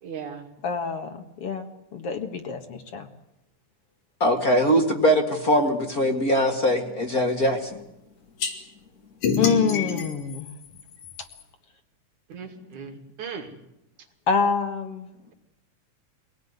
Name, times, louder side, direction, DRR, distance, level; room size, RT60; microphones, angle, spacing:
voice 1, 0.0-0.5 9.4-9.6 12.3-13.6, right 6 dB, 75° right, 4 dB, 3.7 m, -38 dB
voice 2, 0.6-1.7 1.9-3.1 9.4-10.5 14.3-15.1, left 5 dB, 55° left, 7 dB, 2.4 m, -26 dB
voice 3, 4.2-7.8, equal, 35° left, 4 dB, 1.9 m, -21 dB
sound 1, 8.4-8.5 9.2-11.4, left 5 dB, 85° left, 4.3 m, -28 dB
23.5 x 18.0 x 9.5 m, 0.87 s
omnidirectional pair, 3.4 m